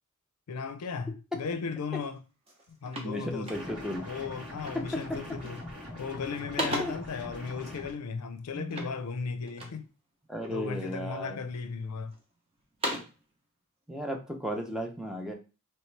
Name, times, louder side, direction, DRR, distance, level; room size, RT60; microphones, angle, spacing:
voice 1, 0.5-2.2 2.7-3.5 4.1-5.6 6.0-9.9 10.5-12.2, left 5 dB, 85° left, 0.4 m, -36 dB
sound 1, 2.0-2.2 2.5-4.0 4.6-5.0 5.3-5.8 6.1-7.2 8.7-9.9 10.4-11.0 11.5-12.2 12.6-13.3, equal, 25° right, 0.8 m, -38 dB
voice 2, 3.0-4.0 4.7-5.2 6.6-6.9 8.5-8.9 10.3-11.4 13.9-15.3, equal, 5° right, 0.5 m, -34 dB
sound 2, 3.5-7.9, left 1 dB, 85° right, 1.8 m, -42 dB
3.1 x 3.0 x 3.2 m
head